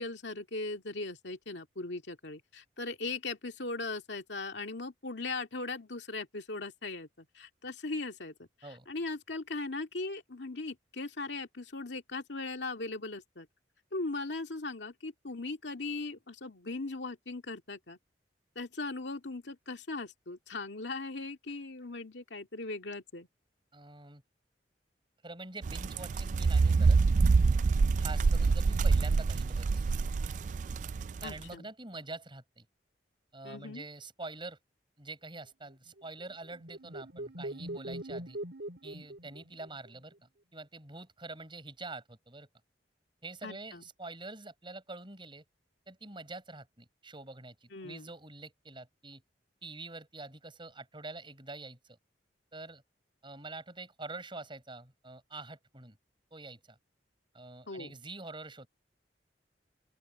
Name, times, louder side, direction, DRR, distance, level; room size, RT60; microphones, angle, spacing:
voice 1, 0.0-8.3 8.9-13.5 13.9-18.0 18.6-23.3 31.2-31.6 33.4-33.8 43.4-43.8 47.7-48.1 57.7-57.9, left 3 dB, 80° left, 2.2 m, -39 dB
voice 2, 23.7-24.2 25.2-27.0 28.0-30.0 31.2-32.7 33.3-34.6 35.0-38.4 38.8-42.5 43.2-45.4 45.9-49.2 49.6-52.0 52.5-52.8 53.2-56.0 56.3-56.8 57.3-58.7, right 2 dB, 30° right, 5.9 m, -46 dB
sound 1, 25.6-31.3, right 4 dB, 45° right, 0.3 m, -26 dB
sound 2, 36.0-40.0, right 1 dB, 70° right, 4.8 m, -42 dB
open air
head